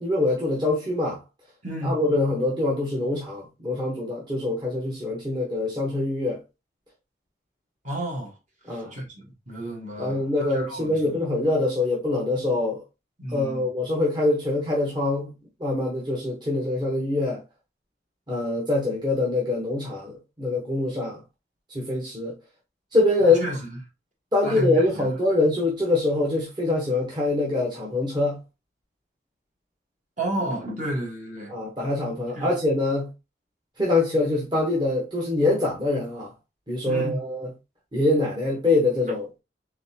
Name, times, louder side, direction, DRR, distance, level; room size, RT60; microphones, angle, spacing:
voice 1, 0.0-1.2 1.8-6.4 8.7-8.9 10.0-12.8 13.3-15.3 15.6-17.4 18.3-21.2 21.7-22.3 22.9-23.5 24.3-28.4 31.5-33.1 33.8-36.3 36.7-37.5 37.9-39.3, left 2 dB, 25° right, 1.0 m, -24 dB
voice 2, 1.6-2.0 7.8-8.3 8.7-11.2 13.2-13.7 23.2-23.7 24.4-25.1 30.2-31.5 32.3-32.5 36.8-37.2, right 1 dB, 40° right, 1.4 m, -31 dB
3.9 x 3.6 x 2.8 m
head